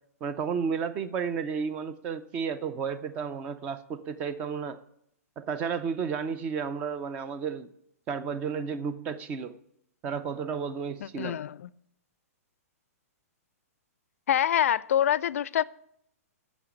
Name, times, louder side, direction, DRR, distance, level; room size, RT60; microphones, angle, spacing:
voice 1, 0.2-4.8 5.4-7.7 8.1-9.6 10.0-11.4, right 6 dB, 15° right, 0.4 m, -32 dB
voice 2, 11.0-11.7 14.3-15.6, left 10 dB, 65° left, 0.4 m, -26 dB
8.7 x 7.1 x 7.1 m
hypercardioid pair, 170°, 8 cm